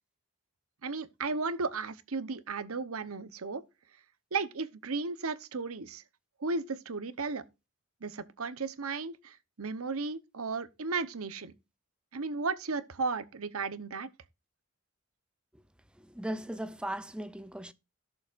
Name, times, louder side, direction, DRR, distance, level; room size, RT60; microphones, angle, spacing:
voice 1, 0.8-3.6 4.3-6.0 6.4-7.4 8.0-11.5 12.1-14.1, right 4 dB, 85° right, 0.9 m, -35 dB
voice 2, 16.0-17.7, right 1 dB, 5° right, 0.6 m, -37 dB
16.5 x 7.0 x 2.5 m
head